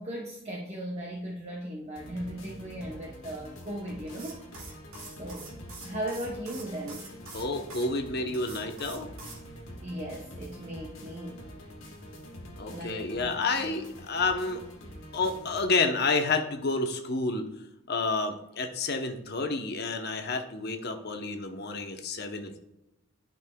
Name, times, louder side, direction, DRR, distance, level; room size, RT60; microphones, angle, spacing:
voice 1, 0.0-4.8 5.2-5.5 5.8-7.1 9.8-11.4 12.7-13.4, right 1 dB, 30° right, -2 dB, 0.8 m, -37 dB
sound 1, 2.0-15.7, equal, 70° left, 1.6 m, -46 dB
sound 2, 4.1-7.9 8.3-9.4, right 3 dB, 85° right, 2.0 m, -46 dB
voice 2, 7.3-9.1 12.6-14.6 15.1-17.5 17.9-22.6, left 3 dB, 50° left, 5 dB, 0.8 m, -29 dB
11.0 x 5.4 x 2.3 m, 0.88 s
head